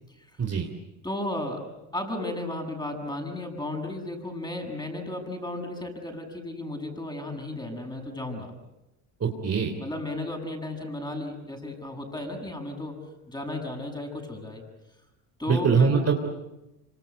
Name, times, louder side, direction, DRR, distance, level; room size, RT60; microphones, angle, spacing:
voice 1, 0.4-0.7 9.2-9.7 15.5-16.3, right 5 dB, 30° right, 4 dB, 3.2 m, -23 dB
voice 2, 1.0-1.6 1.9-8.5 9.8-13.0 13.3-14.6 15.4-16.0, left 1 dB, 10° left, 4 dB, 7.4 m, -34 dB
26.0 x 26.0 x 8.3 m, 0.95 s
hypercardioid pair, 80°, 48 cm